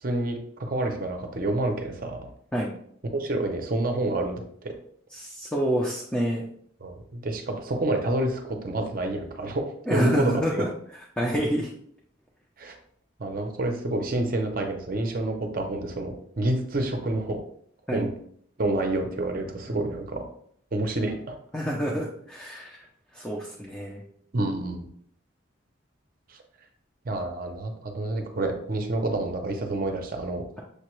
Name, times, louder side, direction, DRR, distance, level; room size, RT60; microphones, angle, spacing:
voice 1, 0.0-2.2 3.1-4.7 6.8-10.6 12.6-12.8 13.2-17.4 17.9-18.1 18.6-20.2 20.7-21.4 24.3-24.9 26.3-26.4 27.0-30.4, right 2 dB, 45° right, 4 dB, 0.6 m, -28 dB
voice 2, 5.1-6.4 9.9-10.7 11.2-11.7 17.9-18.1 19.7-19.8 21.5-22.8 23.1-24.0, equal, 5° left, -4 dB, 0.5 m, -28 dB
6.5 x 2.2 x 3.0 m, 0.64 s
head